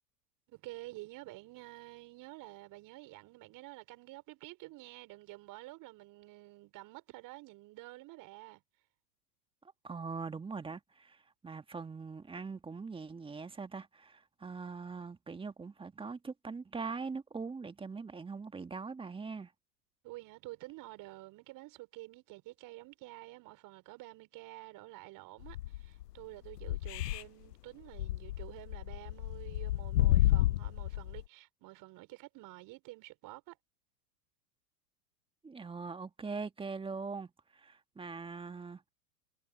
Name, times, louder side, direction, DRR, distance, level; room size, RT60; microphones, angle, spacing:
voice 1, 0.5-8.6 20.0-33.6, right 20 dB, 40° right, 5.3 m, -50 dB
voice 2, 9.8-19.5 35.4-38.8, right 4 dB, 10° right, 1.8 m, -42 dB
sound 1, 25.4-26.0 26.5-27.2 27.5-27.6 27.9-31.2, left 15 dB, 75° left, 0.7 m, -30 dB
hypercardioid pair, 105°, 48 cm